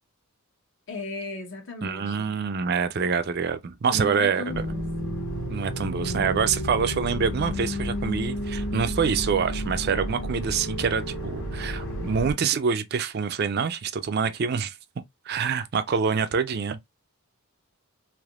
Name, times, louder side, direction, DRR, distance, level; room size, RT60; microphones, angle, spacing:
voice 1, 0.9-2.3 3.8-4.9, left 2 dB, 55° left, 1.0 m, -36 dB
voice 2, 1.8-4.7 5.5-14.7 15.3-16.8, right 6 dB, 45° right, 0.4 m, -26 dB
sound 1, 4.5-12.3, equal, 75° left, 1.4 m, -31 dB
3.3 x 3.0 x 2.3 m
head